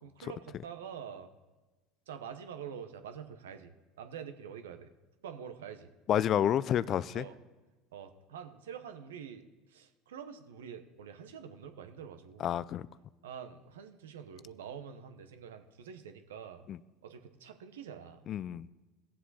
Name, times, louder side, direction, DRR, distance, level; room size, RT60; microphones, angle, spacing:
voice 1, 0.0-1.3 2.1-4.9 5.2-5.9 7.1-7.3 7.9-12.5 13.2-16.7 17.0-18.3, right 7 dB, 85° right, 8 dB, 1.0 m, -46 dB
voice 2, 6.1-7.3 12.4-12.9 16.7-16.8 18.3-18.7, left 10 dB, 50° left, 19 dB, 0.4 m, -29 dB
17.0 x 7.6 x 4.2 m, 1.2 s
hypercardioid pair, 80°, 0 cm